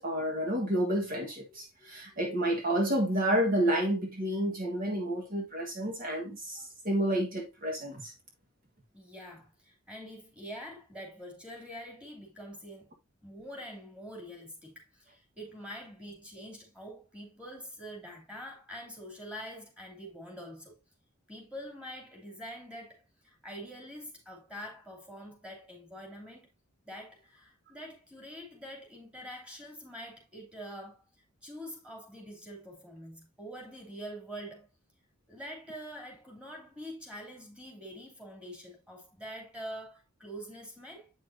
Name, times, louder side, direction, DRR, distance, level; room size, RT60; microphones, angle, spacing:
voice 1, 0.0-8.1, right 1 dB, 45° right, 1.5 m, -30 dB
voice 2, 8.9-12.9 13.2-20.8 21.3-26.5 26.8-31.0 31.4-34.7 35.3-41.1, equal, 5° right, 2.8 m, -45 dB
8.5 x 6.0 x 2.7 m
head